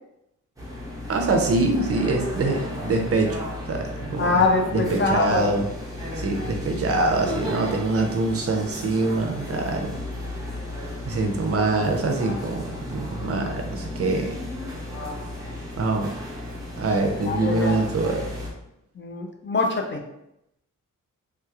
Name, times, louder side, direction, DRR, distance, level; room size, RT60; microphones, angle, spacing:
sound 1, 0.6-18.5, left 1 dB, 10° right, 0.8 m, -34 dB
voice 1, 1.1-4.4 4.7-5.7 6.1-10.0 11.1-14.4 15.8-16.1 16.8-18.3, right 3 dB, 45° right, 3 dB, 0.6 m, -24 dB
voice 2, 4.2-5.5 17.1-17.8 19.0-20.0, left 3 dB, 40° left, 2 dB, 0.4 m, -24 dB
3.2 x 3.0 x 2.3 m, 0.83 s
wide cardioid pair, 115°, 32 cm